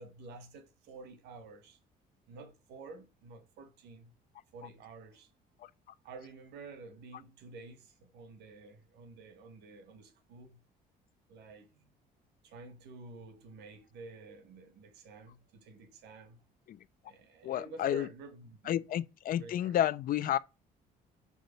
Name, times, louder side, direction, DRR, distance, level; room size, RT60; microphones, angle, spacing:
voice 1, 0.0-1.8 2.3-4.1 4.5-5.3 6.0-10.6 11.3-11.9 12.4-16.4 17.1-18.8 19.4-19.8, right 3 dB, 80° right, 1.7 m, -50 dB
voice 2, 17.4-18.1 18.7-20.4, left 11 dB, 55° left, 0.6 m, -30 dB
6.6 x 4.8 x 5.4 m
cardioid pair, 110°, 17 cm